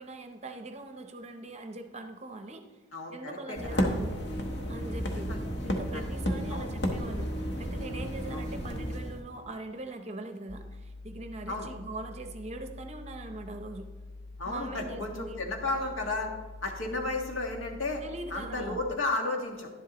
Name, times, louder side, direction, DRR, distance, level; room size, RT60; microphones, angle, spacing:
voice 1, 0.0-2.6 3.1-4.2 4.7-5.3 5.6-13.9 14.5-15.5 18.0-18.8, right 2 dB, 30° right, 7 dB, 0.6 m, -42 dB
voice 2, 2.9-3.9 5.9-6.0 6.5-6.7 8.3-8.4 11.5-11.7 14.4-16.3 16.6-18.0 18.3-19.7, left 2 dB, 75° left, 1 dB, 1.5 m, -33 dB
sound 1, 3.5-9.2, equal, 55° left, 1.0 m, -32 dB
sound 2, 10.5-19.0, left 2 dB, 30° left, 0.4 m, -46 dB
11.5 x 11.0 x 2.9 m, 1.3 s
head